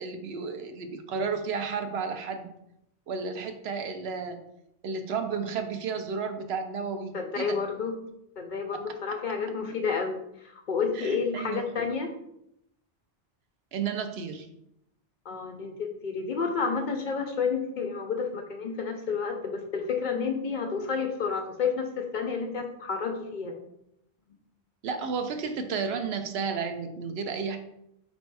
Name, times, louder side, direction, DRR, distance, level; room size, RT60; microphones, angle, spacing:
voice 1, 0.0-2.5 3.1-4.4 4.8-7.6 10.9-11.7 13.7-14.5 24.8-27.6, right 5 dB, 80° right, 7 dB, 0.8 m, -32 dB
voice 2, 7.1-7.9 8.4-12.1 15.3-23.5, left 5 dB, 55° left, 4 dB, 0.6 m, -30 dB
4.2 x 2.7 x 4.6 m, 0.80 s
omnidirectional pair, 1.1 m